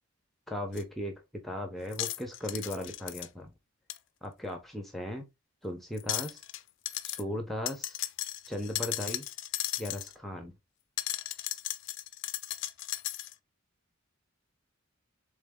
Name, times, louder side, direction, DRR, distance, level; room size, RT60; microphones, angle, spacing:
voice 1, 0.5-3.5 4.2-5.3 5.6-6.4 7.0-8.0 8.5-9.3 9.8-10.5, left 1 dB, ahead, 0.6 m, -37 dB
sound 1, 0.8-0.9 1.9-3.3 3.9-4.0 6.0-6.6 6.9-7.2 7.7-10.1 11.0-13.3, left 15 dB, 60° left, 0.4 m, -36 dB
3.7 x 3.2 x 3.5 m
head